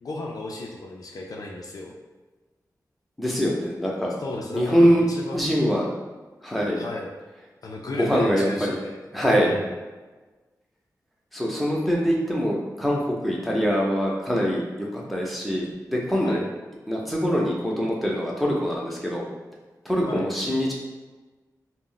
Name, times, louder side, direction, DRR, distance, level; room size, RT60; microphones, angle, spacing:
voice 1, 0.0-1.9 4.2-5.5 6.8-7.1 7.6-9.0 9.4-9.7 16.2-16.5 20.1-20.3, left 2 dB, 65° left, -1 dB, 0.4 m, -35 dB
voice 2, 3.2-4.1 4.5-5.1 5.3-5.9 6.4-6.8 8.0-8.8 9.1-9.5 11.3-16.4 16.9-19.3 19.8-20.7, equal, ahead, -3 dB, 0.7 m, -23 dB
2.3 x 2.1 x 3.8 m, 1.3 s
cardioid pair, 65°, 7 cm